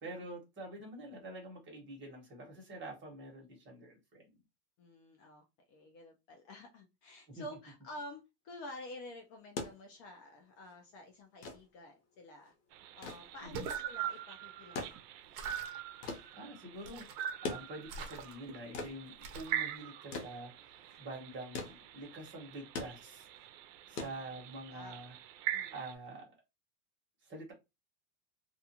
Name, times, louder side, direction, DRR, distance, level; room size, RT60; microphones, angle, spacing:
voice 1, 0.0-4.2 7.3-7.4 13.4-13.6 16.3-23.3 23.9-25.1 25.7-26.3 27.2-27.5, right 2 dB, 25° right, 1.2 m, -47 dB
voice 2, 4.8-12.5 12.9-15.0 23.9-24.1 24.7-25.0 25.5-25.7, left 1 dB, 40° left, 0.6 m, -50 dB
sound 1, 9.3-24.8 26.1-26.2, left 4 dB, 70° left, 1.0 m, -45 dB
sound 2, 12.7-25.9, right 10 dB, 85° right, 0.5 m, -43 dB
sound 3, 13.4-13.9 15.3-15.8 16.8-17.4 17.9-18.6 19.2-19.6, right 4 dB, 55° right, 0.8 m, -45 dB
2.4 x 2.4 x 2.8 m
supercardioid pair, 130°, 48 cm